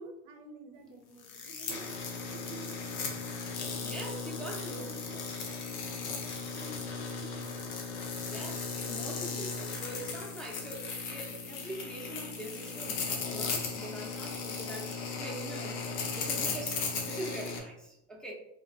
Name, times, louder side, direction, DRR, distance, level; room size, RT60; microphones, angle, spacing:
voice 1, 0.0-3.9 4.3-7.7, right 3 dB, 65° right, 4 dB, 0.6 m, -51 dB
sound 1, 1.2-17.6, left 4 dB, 80° left, 0.7 m, -37 dB
voice 2, 3.8-4.9 8.2-15.8 16.1-18.3, right 1 dB, ahead, -3 dB, 0.6 m, -43 dB
3.4 x 2.2 x 2.4 m, 0.83 s
hypercardioid pair, 70°, 47 cm